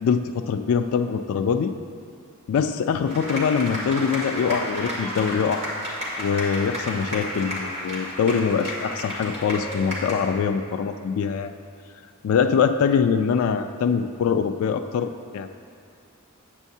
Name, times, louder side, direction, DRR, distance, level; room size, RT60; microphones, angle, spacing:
voice 1, 0.0-1.7 2.5-5.6 6.2-11.5 12.2-15.5, left 6 dB, 65° left, 7 dB, 0.3 m, -23 dB
sound 1, 3.1-10.3, equal, 30° right, 1.9 m, -32 dB
9.0 x 8.1 x 2.7 m, 2.4 s
head